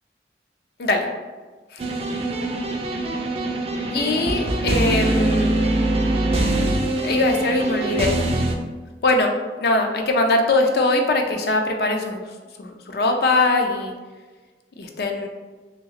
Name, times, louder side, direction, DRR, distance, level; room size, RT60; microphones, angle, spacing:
voice 1, 0.8-1.1 1.7-1.8 3.9-5.5 7.0-8.2 9.0-12.3 12.6-13.9 14.8-15.3, left 2 dB, 60° left, 3 dB, 0.4 m, -21 dB
sound 1, 1.8-8.6, right 1 dB, 35° right, 0.3 m, -23 dB
3.1 x 2.9 x 2.8 m, 1.3 s
head